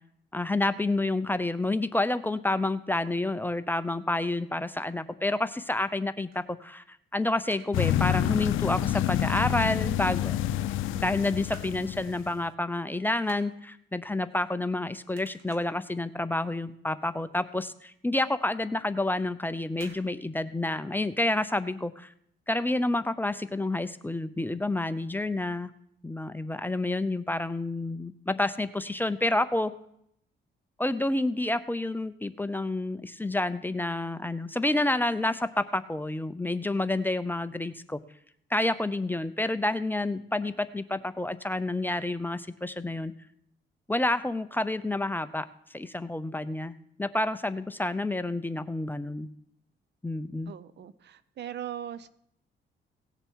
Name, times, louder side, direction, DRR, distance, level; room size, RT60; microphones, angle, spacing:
voice 1, 0.3-6.8 7.1-10.3 10.9-22.1 22.5-25.7 26.0-29.7 30.8-38.0 38.5-43.1 43.9-45.4 45.7-46.7 47.0-49.3 50.0-50.5, left 2 dB, 10° left, 0.6 m, -29 dB
sound 1, 6.3-7.1 7.3-7.8 8.2-8.4 8.7-9.6 10.0-10.6 11.0-11.8 12.2-12.4 12.7-14.8 15.1-15.9 16.3-16.6 16.9-17.0 17.3-17.4 17.9-18.0 18.8-19.1 19.7-20.1 20.3-20.4, right 4 dB, 85° right, 1.9 m, -52 dB
sound 2, 7.7-12.3, left 12 dB, 85° left, 0.5 m, -28 dB
voice 2, 50.5-52.1, right 10 dB, 60° right, 0.7 m, -39 dB
18.0 x 6.8 x 4.6 m
cardioid pair, 90°, 20 cm